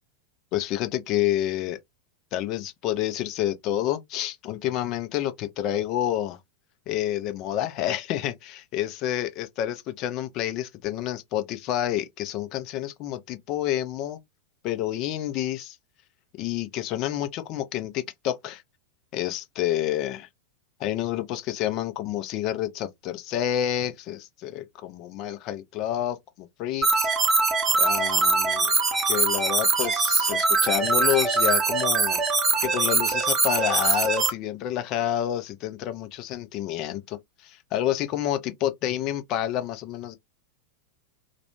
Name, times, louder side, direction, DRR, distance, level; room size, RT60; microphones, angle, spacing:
voice 1, 0.5-1.8 2.3-6.4 6.9-14.2 14.6-15.8 16.4-18.6 19.1-20.3 20.8-27.1 27.7-28.7 29.1-32.2 32.6-40.2, left 12 dB, 40° left, 0.5 m, -29 dB
sound 1, 26.8-34.3, right 4 dB, 20° right, 0.7 m, -22 dB
2.4 x 2.2 x 2.9 m
figure-of-eight pair, 90°, 0 cm